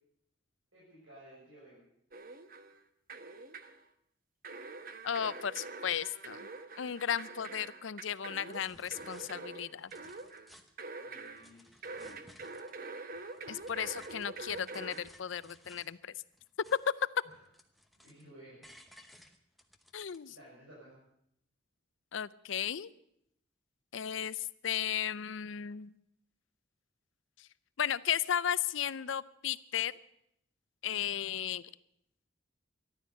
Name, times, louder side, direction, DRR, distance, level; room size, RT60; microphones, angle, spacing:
voice 1, 0.7-1.8 11.0-12.6 17.2-17.3 18.0-18.7 19.0-19.2 20.3-21.0, right 1 dB, 85° right, -7 dB, 7.0 m, -56 dB
sound 1, 2.1-2.8 3.1-3.8 4.4-11.5 11.8-15.1, right 3 dB, 45° right, 1.0 m, -45 dB
voice 2, 5.0-6.5 6.8-9.9 13.5-16.1 16.7-17.1 19.9-20.3 22.1-22.9 23.9-26.0 27.4-27.5 27.8-29.9 30.8-31.7, left 9 dB, 75° left, 18 dB, 0.5 m, -35 dB
sound 2, 8.1-8.2 8.5-9.3 9.7-10.8 11.3-12.8 13.1-16.0 16.3-17.0 17.3-18.3 18.6-20.2, left 1 dB, ahead, 0.9 m, -59 dB
14.0 x 12.0 x 8.3 m, 0.75 s
head